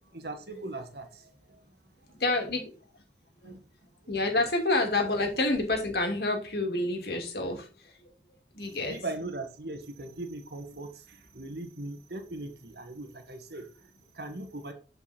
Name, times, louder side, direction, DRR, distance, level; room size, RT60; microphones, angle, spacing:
voice 1, 0.1-1.6 3.4-3.6 8.6-14.7, right 2 dB, 65° right, 1.7 m, -40 dB
voice 2, 2.2-2.7 3.4-3.5 4.1-7.7 8.5-9.0, left 2 dB, 60° left, 2.7 m, -28 dB
9.2 x 5.4 x 4.4 m
head